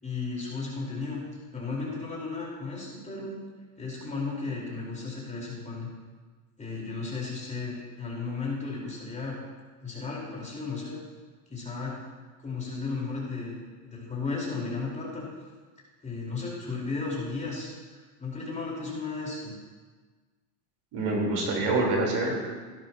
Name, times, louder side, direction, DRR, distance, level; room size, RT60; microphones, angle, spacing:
voice 1, 0.0-1.2 1.5-3.4 3.8-5.9 6.6-9.4 9.8-11.0 11.5-12.0 12.4-15.3 16.0-19.5, left 4 dB, 15° left, -5 dB, 4.4 m, -34 dB
voice 2, 20.9-22.4, right 2 dB, 50° right, -2 dB, 4.2 m, -26 dB
16.5 x 12.0 x 3.0 m, 1.4 s
supercardioid pair, 110°, 48 cm